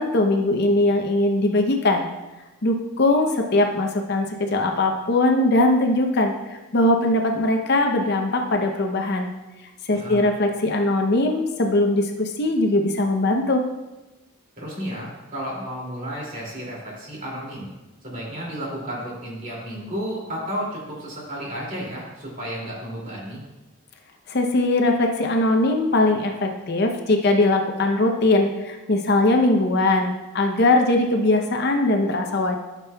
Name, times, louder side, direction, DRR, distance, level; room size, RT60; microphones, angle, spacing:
voice 1, 0.0-2.1 2.6-9.3 9.8-13.6 24.3-32.5, left 2 dB, 50° left, 4 dB, 0.6 m, -20 dB
voice 2, 9.9-10.2 14.6-17.7 18.0-23.4, equal, 35° right, -4 dB, 2.4 m, -32 dB
12.0 x 6.1 x 2.2 m, 1.1 s
head